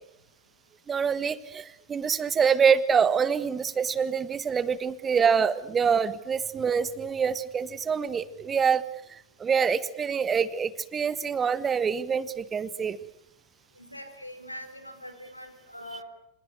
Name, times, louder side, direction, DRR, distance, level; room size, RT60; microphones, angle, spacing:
voice 1, 0.9-8.8 9.1-13.0, right 6 dB, 20° right, 16 dB, 1.5 m, -25 dB
voice 2, 13.8-16.0, left 1 dB, 90° left, 9 dB, 4.2 m, -42 dB
28.0 x 27.5 x 6.6 m, 0.80 s
figure-of-eight pair, 90°, 0 cm